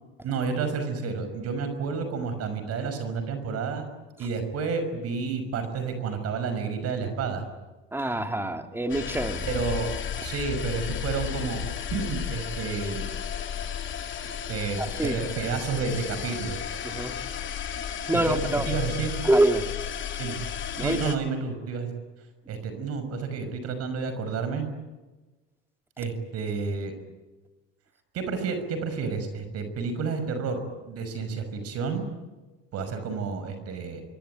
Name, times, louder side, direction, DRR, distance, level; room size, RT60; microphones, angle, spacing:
voice 1, 0.2-3.8 4.2-7.4 9.4-9.9 10.2-11.6 11.9-13.0 14.5-16.6 18.1-18.4 18.7-19.2 20.2-20.4 20.8-21.9 22.5-24.7 26.0-26.9 28.1-32.1 32.7-34.0, right 5 dB, 55° right, 9 dB, 6.0 m, -30 dB
voice 2, 7.9-9.4 14.8-15.3 16.8-17.2 18.1-18.7 19.2-19.7 20.8-21.0, right 1 dB, 10° right, 6 dB, 3.1 m, -25 dB
sound 1, 8.9-21.2, left 8 dB, 40° left, 2.9 m, -33 dB
26.5 x 23.0 x 9.4 m, 1.2 s
supercardioid pair, 100°, 30 cm